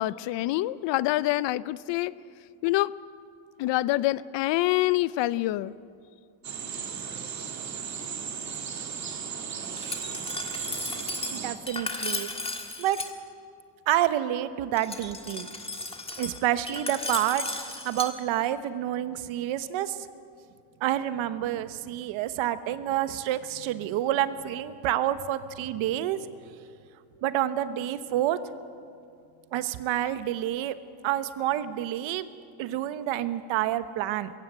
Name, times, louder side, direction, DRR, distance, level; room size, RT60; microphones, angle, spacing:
voice 1, 0.0-2.1 2.6-2.9 3.6-5.7, left 17 dB, 65° left, 18 dB, 0.6 m, -26 dB
sound 1, 6.4-11.6, right 7 dB, 35° right, 2.0 m, -36 dB
Glass, 9.8-13.1 14.8-18.1, left 2 dB, 10° left, 1.6 m, -35 dB
voice 2, 11.3-12.3 12.8-13.0 13.9-15.5 16.2-17.5 17.7-20.1 20.8-26.2 27.2-28.4 29.5-30.7 31.0-32.3 32.6-34.3, right 12 dB, 75° right, 12 dB, 1.2 m, -28 dB
22.0 x 16.0 x 9.2 m, 2.4 s
cardioid pair, 150°, 47 cm